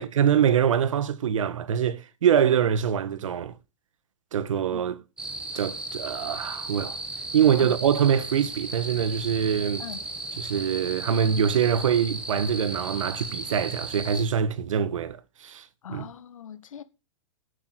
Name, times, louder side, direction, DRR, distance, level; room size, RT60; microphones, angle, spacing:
voice 1, 0.0-3.6 4.3-5.0 5.5-7.0 7.3-9.8 10.4-16.1, right 8 dB, 75° right, 1.4 m, -24 dB
sound 1, 5.2-14.2, right 2 dB, 5° right, 1.4 m, -36 dB
voice 2, 15.8-16.8, left 9 dB, 85° left, 1.6 m, -40 dB
8.5 x 7.8 x 8.1 m
hypercardioid pair, 170°, 17 cm